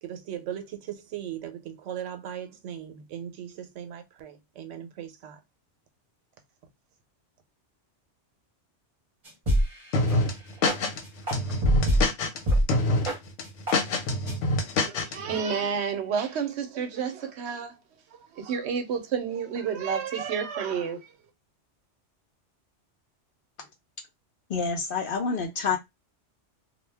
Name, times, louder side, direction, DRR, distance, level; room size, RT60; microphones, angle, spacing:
voice 1, 0.0-5.4, right 10 dB, 90° right, 1.0 m, -38 dB
sound 1, 9.2-9.8 10.1-10.2 10.6-10.8 11.3-12.0 12.5-12.6 13.0-13.2 13.7-13.8 14.3-14.4, equal, 30° right, 0.9 m, -23 dB
sound 2, 9.9-11.0 11.3-12.4 12.7-13.1 13.4-15.1, left 2 dB, 80° left, 1.0 m, -25 dB
voice 2, 14.7-17.8 18.2-21.1, right 6 dB, 70° right, 0.9 m, -30 dB
voice 3, 24.5-25.8, left 5 dB, 60° left, 0.6 m, -27 dB
2.3 x 2.2 x 3.3 m
omnidirectional pair, 1.2 m